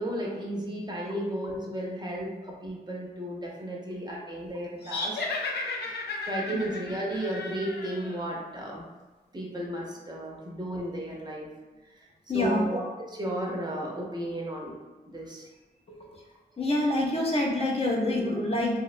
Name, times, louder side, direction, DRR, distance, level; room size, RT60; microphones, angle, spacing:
voice 1, 0.0-5.2 6.3-8.8 9.3-11.5 12.0-12.1 12.3-14.8 15.1-15.5, right 1 dB, 25° right, -2 dB, 0.5 m, -34 dB
sound 1, 4.8-8.2, left 3 dB, 85° left, 0.4 m, -34 dB
voice 2, 12.3-12.7 15.9-16.2 16.6-18.8, left 1 dB, 35° left, -2 dB, 0.5 m, -27 dB
2.7 x 2.1 x 2.4 m, 1.2 s
wide cardioid pair, 85°, 17 cm